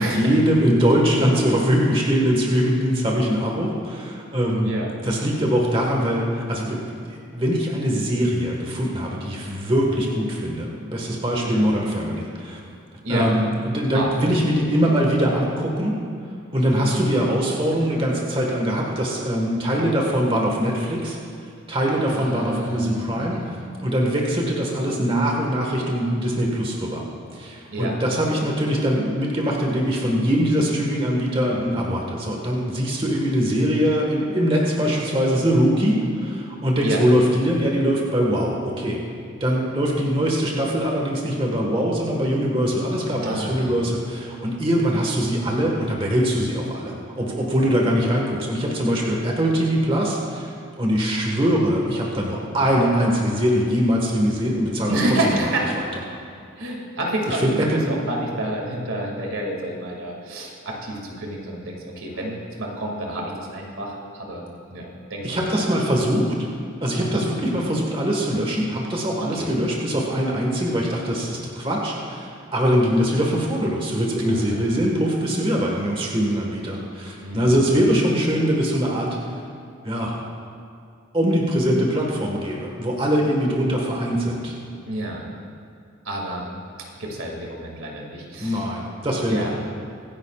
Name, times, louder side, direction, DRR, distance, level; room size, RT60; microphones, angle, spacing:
voice 1, 0.0-4.7 5.0-12.6 13.1-16.0 16.5-21.2 21.7-23.6 23.8-27.0 27.3-39.0 39.4-55.0 57.3-57.8 65.2-66.5 66.8-79.2 79.8-80.2 81.1-84.5 88.4-89.5, equal, 25° right, -1 dB, 1.5 m, -22 dB
voice 2, 16.7-17.1 22.1-23.1 23.3-23.6 27.7-27.9 31.5-32.0 36.8-37.0 43.2-43.8 54.9-55.7 56.6-65.6 65.8-65.9 66.9-67.4 69.2-69.6 74.2-74.8 77.2-77.9 84.9-85.2 86.0-86.5 87.0-88.7 89.3-89.5, right 1 dB, 80° right, -1 dB, 2.3 m, -29 dB
24.5 x 10.5 x 2.4 m, 2.4 s
head